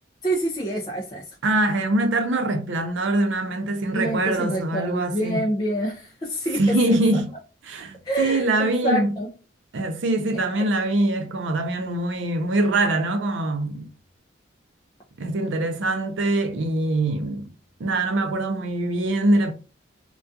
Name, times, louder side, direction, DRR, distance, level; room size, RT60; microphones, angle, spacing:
voice 1, 0.2-1.2 3.9-7.0 8.0-9.3, right 1 dB, 20° left, 0.3 m, -27 dB
voice 2, 1.4-5.4 6.6-7.3 7.6-9.1 9.7-13.9 15.2-17.5 17.8-19.5, right 2 dB, 70° right, 0.5 m, -23 dB
2.3 x 2.2 x 2.6 m
head